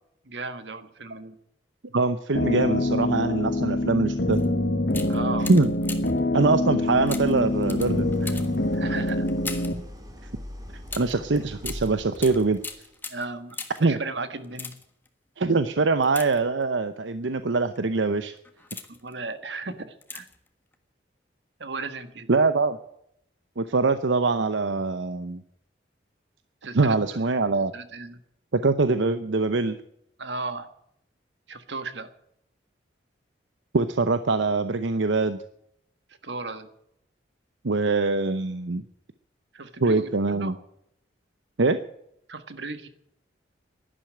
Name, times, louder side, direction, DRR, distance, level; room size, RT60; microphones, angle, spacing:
voice 1, 0.2-1.4 5.1-5.5 8.7-9.3 13.1-14.7 18.9-20.3 21.6-22.3 26.6-27.0 27.5-28.2 30.2-30.7 31.5-32.1 36.2-36.7 39.5-40.6 42.3-42.9, right 3 dB, 75° right, 10 dB, 1.6 m, -35 dB
voice 2, 1.9-4.4 5.5-5.7 6.3-8.4 10.9-12.6 13.8-14.0 15.4-18.3 22.3-22.8 23.6-25.4 26.7-27.7 28.5-29.8 33.7-35.4 37.6-38.8 39.8-40.5 41.6-41.8, right 3 dB, 90° right, 11 dB, 0.8 m, -23 dB
sound 1, 2.3-9.7, left 1 dB, 65° left, 1.4 m, -25 dB
sound 2, 4.3-4.5 4.9-6.3 7.1-9.8 10.9-13.9 14.4-15.1 16.0-16.9 17.5-17.8 18.3-19.1 20.0-20.5 20.7-20.8, left 3 dB, 10° left, 1.4 m, -40 dB
Idling, 6.8-12.9, left 1 dB, 20° right, 2.9 m, -42 dB
11.5 x 11.5 x 8.7 m, 0.76 s
head